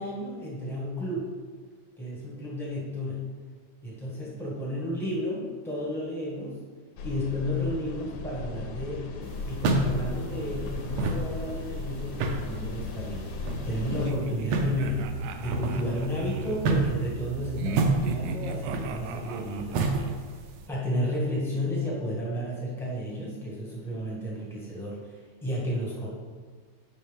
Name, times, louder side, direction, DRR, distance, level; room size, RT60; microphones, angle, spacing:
voice 1, 0.0-1.3 2.0-3.3 3.8-6.6 7.0-9.1 9.5-13.3 13.6-20.1 20.7-26.1, left 1 dB, 5° left, -6 dB, 0.4 m, -32 dB
sound 1, 7.0-14.1, left 3 dB, 75° left, 1.8 m, -36 dB
sound 2, 9.2-20.6, right 3 dB, 70° right, 1.6 m, -31 dB
sound 3, 13.9-16.6 17.6-20.2, right 7 dB, 90° right, 2.1 m, -39 dB
9.1 x 5.8 x 3.6 m, 1.5 s
omnidirectional pair, 3.5 m